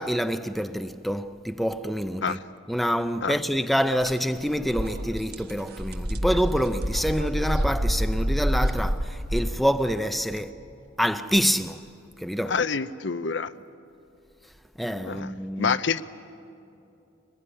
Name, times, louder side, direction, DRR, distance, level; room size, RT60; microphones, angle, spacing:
voice 1, 0.0-2.4 2.7-10.5 11.0-11.8 12.2-12.5 14.8-15.8, equal, ahead, 0.5 m, -26 dB
sound 1, 4.0-4.1 4.5-9.5, equal, 50° right, 1.3 m, -27 dB
voice 2, 12.5-13.5 15.1-15.3 15.6-16.0, left 5 dB, 60° left, 0.7 m, -27 dB
23.5 x 20.5 x 9.9 m
head